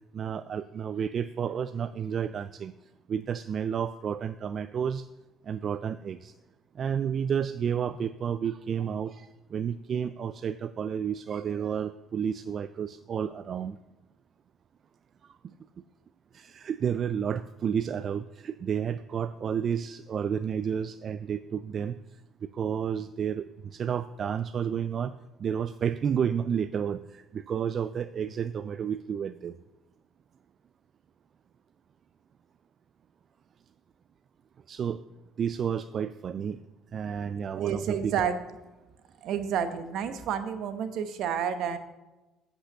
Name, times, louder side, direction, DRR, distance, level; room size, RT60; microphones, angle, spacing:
voice 1, 0.1-2.7 3.1-5.0 5.5-6.3 6.8-13.8 16.3-21.9 22.4-25.1 25.4-29.5 34.7-35.0 35.4-36.6 36.9-38.1, right 8 dB, 50° right, 13 dB, 0.4 m, -31 dB
voice 2, 37.6-38.4 39.2-41.8, right 8 dB, 65° right, 10 dB, 1.0 m, -30 dB
8.5 x 5.5 x 6.6 m, 1.1 s
supercardioid pair, 80°, 0 cm